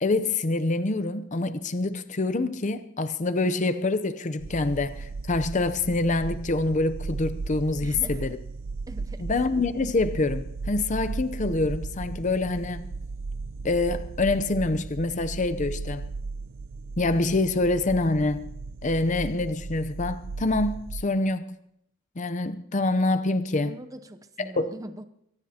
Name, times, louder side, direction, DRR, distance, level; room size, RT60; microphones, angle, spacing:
voice 1, 0.0-8.4 9.2-12.9 13.6-16.0 17.0-18.4 18.8-21.5 22.2-23.7 24.4-24.7, left 2 dB, 35° left, 0.6 m, -26 dB
sound 1, 4.4-21.0, right 3 dB, 70° right, 0.6 m, -36 dB
voice 2, 7.8-8.3 8.9-9.3 23.6-25.0, right 1 dB, 15° right, 0.7 m, -42 dB
24.0 x 18.0 x 2.9 m
head